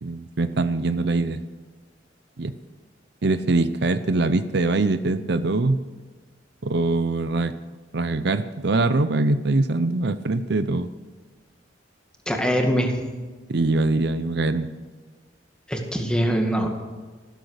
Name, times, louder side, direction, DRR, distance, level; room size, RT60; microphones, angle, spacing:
voice 1, 0.0-1.4 2.4-2.5 3.2-5.8 6.6-7.5 7.9-10.9 13.5-14.7, right 2 dB, 65° right, 11 dB, 0.7 m, -23 dB
voice 2, 12.3-12.9 15.7-16.7, equal, 5° left, 2 dB, 2.2 m, -22 dB
15.0 x 13.0 x 6.5 m, 1.3 s
head